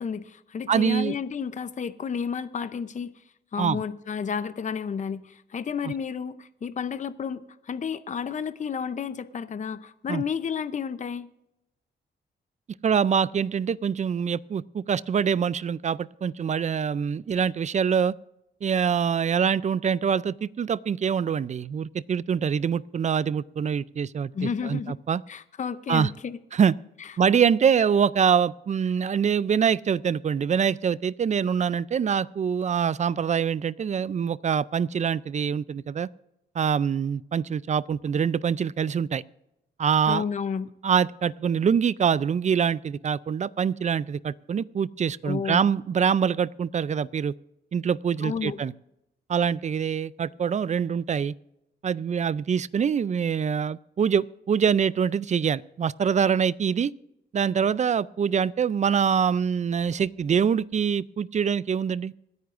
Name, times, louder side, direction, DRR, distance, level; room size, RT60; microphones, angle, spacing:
voice 1, 0.0-3.1 3.5-11.3 24.3-25.0 25.3-26.4 27.0-27.1 27.4-27.5 40.1-40.7 45.2-45.6 48.2-48.6, left 6 dB, 40° left, 13 dB, 0.6 m, -31 dB
voice 2, 0.7-1.2 3.6-3.8 5.8-5.9 10.1-10.2 12.8-18.2 18.6-25.2 25.9-26.1 26.5-26.7 27.2-36.1 36.6-39.2 39.8-40.2 40.8-47.3 47.7-48.7 49.3-51.3 51.8-56.9 57.3-62.1, right 7 dB, 40° right, 20 dB, 0.4 m, -24 dB
26.0 x 9.5 x 2.5 m, 0.88 s
cardioid pair, 105°, 19 cm